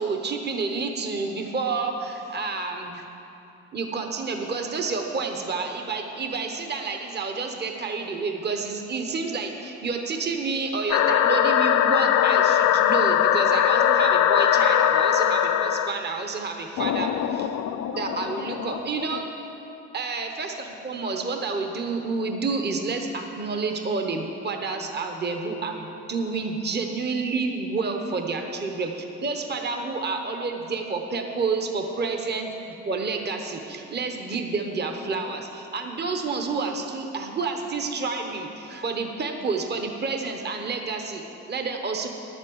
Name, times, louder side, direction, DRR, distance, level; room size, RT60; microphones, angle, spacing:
voice 1, 0.0-3.0 3.7-17.5 17.9-19.3 19.9-42.1, right 4 dB, 35° right, 4 dB, 1.0 m, -29 dB
sound 1, 10.9-15.9 16.8-19.2, left 10 dB, 70° left, 0.6 m, -21 dB
10.5 x 7.3 x 8.0 m, 3.0 s
cardioid pair, 90°, 30 cm